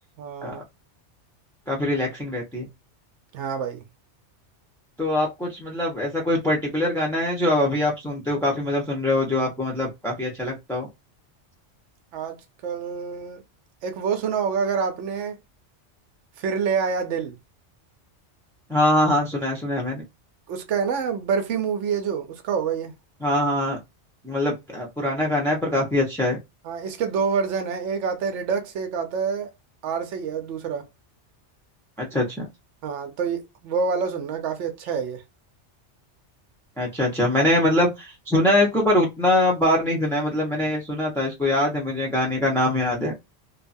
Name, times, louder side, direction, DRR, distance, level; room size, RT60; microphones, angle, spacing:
voice 1, 0.2-0.6 3.3-3.8 12.1-13.4 13.8-15.4 16.4-17.4 20.5-22.9 26.6-29.5 29.8-30.9 32.8-35.2, right 6 dB, 85° right, 0.9 m, -27 dB
voice 2, 1.7-2.7 5.0-10.9 18.7-20.0 23.2-23.8 24.2-26.4 32.0-32.5 36.8-43.1, left 1 dB, 5° left, 0.6 m, -23 dB
2.8 x 2.3 x 2.5 m
omnidirectional pair, 1.2 m